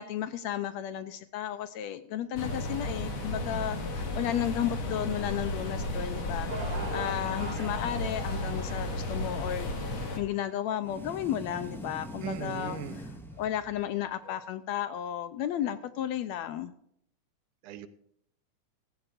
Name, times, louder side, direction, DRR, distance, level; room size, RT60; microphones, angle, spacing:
voice 1, 0.0-13.1 13.4-16.7, left 10 dB, 75° left, 11 dB, 1.8 m, -33 dB
sound 1, 2.4-10.2, left 2 dB, 55° left, 3.2 m, -34 dB
sound 2, 6.5-12.7 13.4-13.5 14.2-14.4, right 2 dB, 15° right, 2.2 m, -43 dB
sound 3, 10.8-14.0, equal, ahead, 0.5 m, -43 dB
voice 2, 12.2-13.0 17.6-17.9, right 9 dB, 80° right, 12 dB, 2.4 m, -38 dB
16.5 x 15.5 x 2.6 m, 0.71 s
omnidirectional pair, 3.5 m